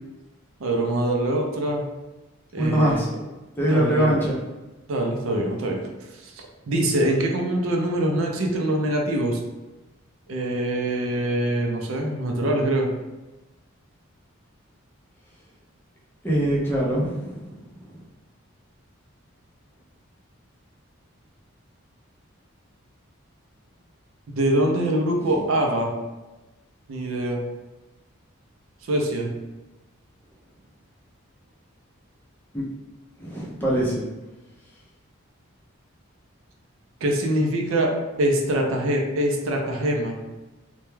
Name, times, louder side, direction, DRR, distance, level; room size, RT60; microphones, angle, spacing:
voice 1, 0.6-1.8 2.5-3.0 3.6-4.2 4.9-5.8 6.2-9.4 10.3-12.9 24.3-25.9 26.9-27.4 28.9-29.3 37.0-37.9 38.2-40.2, right 1 dB, 75° right, 1 dB, 0.4 m, -24 dB
voice 2, 2.6-3.1 3.6-4.4 16.2-17.5 32.5-32.7 33.2-34.0, equal, 10° left, -5 dB, 0.4 m, -23 dB
2.2 x 2.1 x 3.1 m, 1.1 s
head